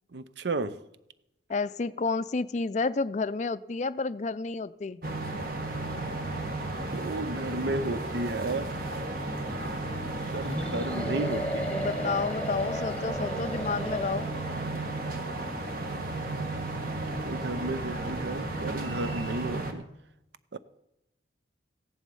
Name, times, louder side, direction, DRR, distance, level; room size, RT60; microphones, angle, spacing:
voice 1, 0.1-0.8 6.6-8.7 10.3-11.7 17.2-19.9 20.5-20.6, right 2 dB, 65° right, 0.7 m, -33 dB
voice 2, 1.5-5.0 11.7-14.3, left 4 dB, 40° left, 0.4 m, -30 dB
sound 1, 5.0-19.7, right 2 dB, 50° right, 1.6 m, -34 dB
sound 2, 10.4-14.6, equal, 5° left, 1.1 m, -35 dB
15.5 x 10.5 x 5.4 m
head